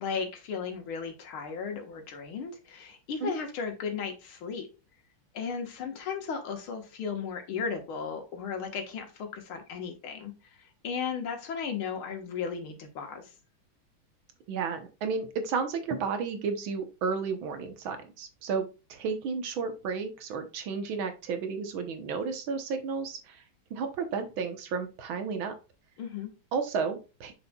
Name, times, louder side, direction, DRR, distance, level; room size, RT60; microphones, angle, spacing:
voice 1, 0.0-4.7 5.3-10.3 10.6-13.3 26.0-26.3, left 6 dB, 80° left, 4 dB, 2.3 m, -35 dB
voice 2, 14.5-23.4 23.7-25.5 26.5-27.3, right 5 dB, 75° right, 7 dB, 1.9 m, -32 dB
6.8 x 6.4 x 2.3 m, 0.31 s
omnidirectional pair, 2.3 m